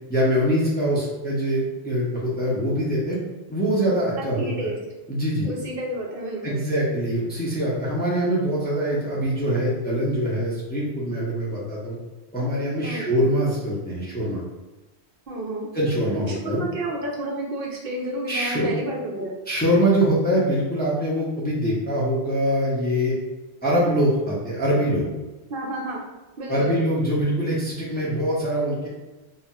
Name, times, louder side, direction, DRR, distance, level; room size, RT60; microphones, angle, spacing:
voice 1, 0.1-3.2 3.5-4.7 5.1-5.5 6.4-12.0 12.3-14.4 15.7-16.6 18.3-18.7 19.5-23.1 23.6-25.1 26.5-28.9, equal, 10° left, -7 dB, 0.5 m, -23 dB
voice 2, 4.2-4.8 5.4-6.6 12.8-13.1 15.3-15.7 16.3-19.3 25.5-26.0 26.4-26.7, right 1 dB, 65° right, -2 dB, 0.7 m, -31 dB
4.1 x 2.0 x 2.3 m, 1.1 s
omnidirectional pair, 1.1 m